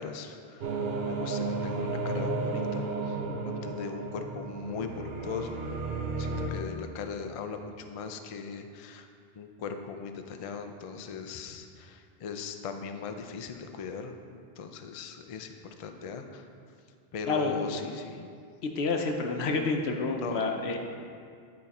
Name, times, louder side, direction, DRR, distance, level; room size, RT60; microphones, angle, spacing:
voice 1, 0.0-5.7 6.2-9.1 9.4-16.4 17.1-18.3 20.2-20.5, left 5 dB, 50° left, 6 dB, 0.4 m, -39 dB
sound 1, 0.6-6.5, right 3 dB, 75° right, 0.9 m, -33 dB
voice 2, 17.3-17.6 18.6-20.8, left 3 dB, 85° left, 3 dB, 1.0 m, -29 dB
9.8 x 4.3 x 4.1 m, 2.3 s
omnidirectional pair, 1.0 m